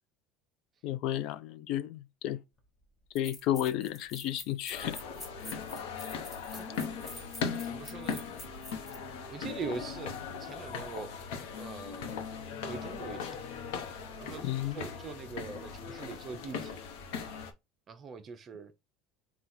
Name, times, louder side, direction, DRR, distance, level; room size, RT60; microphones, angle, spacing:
voice 1, 0.8-2.4 3.1-5.0 14.4-14.8, left 12 dB, 55° left, 0.4 m, -32 dB
sound 1, 2.6-2.7 3.1-9.0, left 2 dB, 20° left, 1.0 m, -47 dB
sound 2, 4.7-17.5, left 6 dB, 85° left, 0.9 m, -39 dB
voice 2, 6.5-7.3 7.6-8.2 9.3-12.3 12.7-13.4 14.2-16.8 17.9-18.7, right 5 dB, 25° right, 0.6 m, -43 dB
3.9 x 2.3 x 4.3 m
cardioid pair, 155°, 0 cm